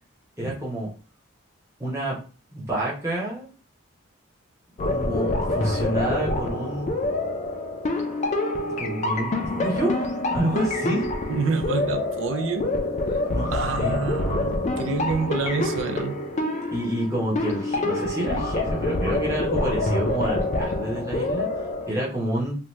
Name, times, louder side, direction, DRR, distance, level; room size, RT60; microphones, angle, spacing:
voice 1, 0.4-0.9 1.8-2.2 2.5-3.5 4.8-6.9 8.7-10.0 10.3-11.1 13.3-14.0 16.7-21.5 21.9-22.5, right 1 dB, 15° right, 0.8 m, -28 dB
sound 1, 4.8-21.9, left 2 dB, 35° left, 0.3 m, -26 dB
voice 2, 11.3-12.8 13.5-16.2, right 4 dB, 70° right, 0.4 m, -28 dB
2.8 x 2.2 x 3.1 m
head